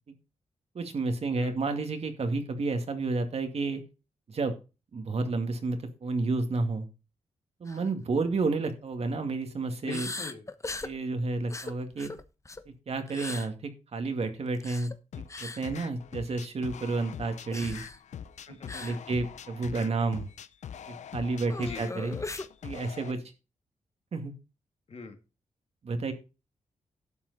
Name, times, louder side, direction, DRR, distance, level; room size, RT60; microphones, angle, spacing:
voice 1, 0.7-3.8 4.3-4.6 4.9-6.9 7.6-10.1 10.8-12.1 12.9-17.8 18.5-20.3 20.9-22.2 22.6-23.2 24.1-24.3 25.8-26.1, right 3 dB, 60° right, 7 dB, 2.2 m, -31 dB
sound 1, 7.7-7.9 8.3-8.4 9.9-11.0 11.5-12.7 13.1-13.5 14.5-14.9 15.3-15.6 17.5-18.0 18.7-19.0 19.2-19.4 19.8-19.9 21.5-22.5, left 3 dB, 25° left, 1.1 m, -39 dB
voice 2, 9.8-10.5 18.5-19.0 21.6-21.9 24.9-25.2, left 4 dB, 55° left, 6 dB, 2.1 m, -42 dB
sound 2, 15.1-23.1, left 8 dB, 75° left, 0.7 m, -43 dB
12.0 x 7.4 x 4.1 m, 0.31 s
cardioid pair, 65°, 12 cm